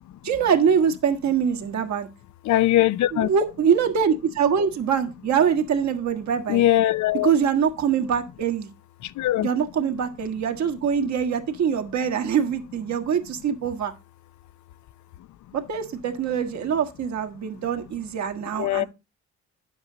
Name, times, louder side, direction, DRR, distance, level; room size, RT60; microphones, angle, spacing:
voice 1, 0.2-2.1 3.1-6.6 7.2-8.7 9.4-13.9 15.5-18.9, right 7 dB, 65° right, 1.6 m, -24 dB
voice 2, 2.5-3.3 6.5-7.3 9.2-9.5 18.6-18.8, left 13 dB, 70° left, 0.5 m, -20 dB
9.9 x 7.6 x 3.9 m
cardioid pair, 90°, 30 cm